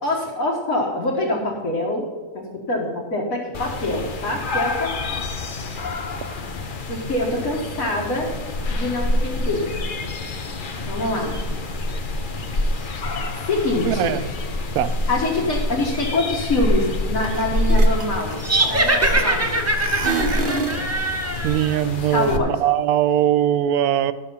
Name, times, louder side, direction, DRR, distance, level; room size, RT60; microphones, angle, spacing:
voice 1, 0.0-2.1 2.3-5.2 6.9-9.7 10.9-11.4 13.5-14.2 15.1-18.4 18.7-19.7 21.9-22.6, left 2 dB, 65° left, -4 dB, 2.0 m, -25 dB
sound 1, 3.5-22.4, left 1 dB, 40° left, 0.8 m, -26 dB
voice 2, 13.9-14.3 14.7-14.9 21.4-24.1, right 11 dB, 80° right, 13 dB, 1.1 m, -20 dB
sound 2, 17.2-17.4 17.7-19.5 19.8-20.9, right 4 dB, 45° right, 1.0 m, -26 dB
sound 3, 18.4-21.8, right 2 dB, 15° right, 0.5 m, -22 dB
12.0 x 6.8 x 5.5 m, 1.5 s
omnidirectional pair, 1.6 m